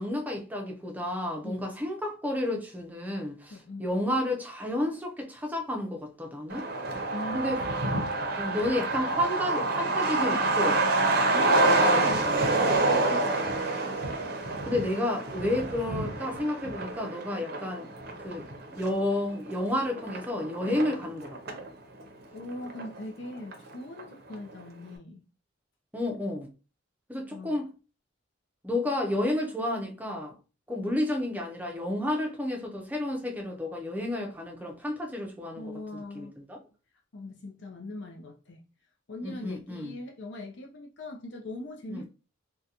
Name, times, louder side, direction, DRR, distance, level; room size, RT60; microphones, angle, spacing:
voice 1, 0.0-6.7 7.3-7.6 8.4-10.8 11.8-12.0 14.6-17.9 18.2-18.4 18.7-21.4 25.9-26.5 27.1-27.7 28.6-30.3 30.7-35.7 35.9-36.6 39.2-39.9 41.9-42.0, left 1 dB, 10° right, 0.5 m, -31 dB
voice 2, 3.5-3.9 7.1-7.6 10.2-14.0 17.5-17.6 20.7-20.8 22.3-25.2 27.3-27.6 35.6-36.4 37.1-38.6 39.1-42.1, left 1 dB, 60° left, 0.5 m, -41 dB
Truck, 6.5-21.7 22.0-22.1 22.4-23.2 23.5-23.6 24.0-24.3, right 2 dB, 50° right, 0.6 m, -27 dB
3.7 x 2.2 x 2.8 m
head